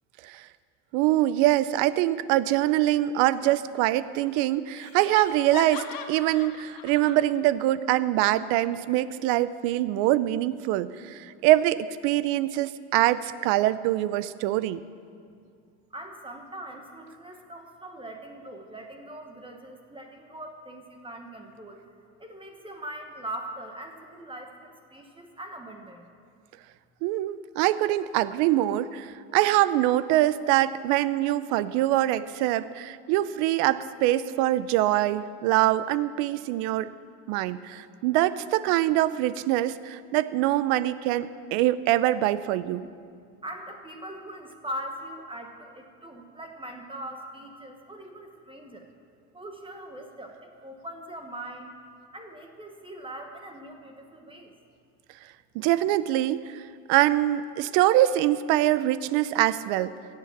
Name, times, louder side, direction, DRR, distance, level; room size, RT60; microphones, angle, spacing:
voice 1, 0.9-14.8 27.0-36.9 37.3-42.9 55.5-56.6 56.9-59.9, right 14 dB, 75° right, 16 dB, 0.6 m, -24 dB
Laughter, 3.4-4.0 4.3-4.4 4.8-7.2, left 8 dB, 65° left, 1.3 m, -41 dB
voice 2, 15.9-21.8 22.2-26.1 43.4-48.9 49.3-51.7 52.1-54.5, right 1 dB, 15° right, 3 dB, 1.2 m, -41 dB
15.5 x 7.8 x 7.3 m, 2.3 s
supercardioid pair, 105°, 37 cm